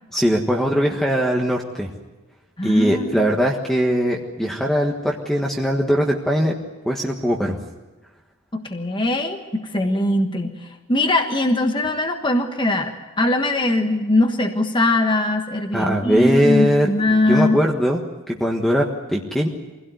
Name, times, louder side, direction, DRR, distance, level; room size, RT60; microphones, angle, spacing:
voice 1, 0.1-1.9 2.6-6.5 6.8-7.6 15.7-18.0 18.3-19.5, equal, ahead, 0 dB, 1.4 m, -20 dB
voice 2, 2.6-3.3 8.5-17.6, left 2 dB, 20° left, 4 dB, 1.4 m, -21 dB
24.5 x 17.0 x 9.4 m, 1.2 s
head